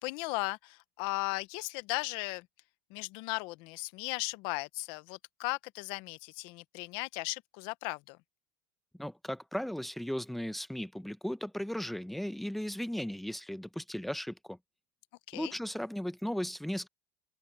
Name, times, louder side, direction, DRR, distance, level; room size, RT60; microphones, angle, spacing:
voice 1, 0.0-2.5 2.9-8.2 15.3-15.5, left 24 dB, 65° left, 0.9 m, -36 dB
voice 2, 9.0-14.6 15.3-16.9, equal, ahead, 0.9 m, -36 dB
open air
supercardioid pair, 125°, 9 cm